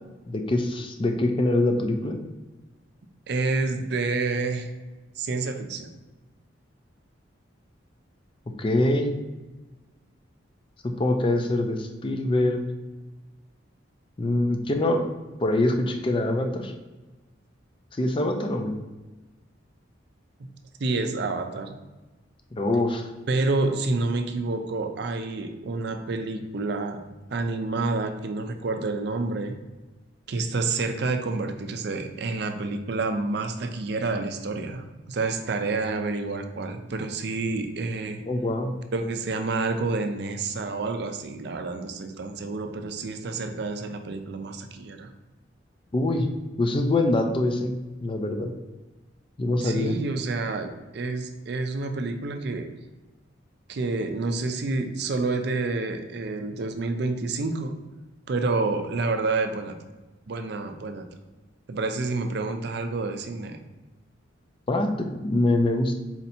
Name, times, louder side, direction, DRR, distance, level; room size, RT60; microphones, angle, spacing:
voice 1, 0.3-2.2 8.6-9.1 10.8-12.6 14.2-15.0 15.4-16.7 17.9-18.7 22.5-23.1 38.3-38.7 45.9-46.3 46.6-48.5 49.4-50.0 64.7-65.9, left 2 dB, 25° left, 5 dB, 0.4 m, -24 dB
voice 2, 3.3-4.7 5.2-5.9 20.4-20.5 20.8-21.8 23.3-27.0 27.3-29.5 30.3-38.2 38.9-45.1 49.6-52.7 53.7-57.7 58.3-59.8 60.3-61.0 61.7-63.7, right 3 dB, 55° right, 6 dB, 0.5 m, -28 dB
4.3 x 2.7 x 4.1 m, 1.2 s
head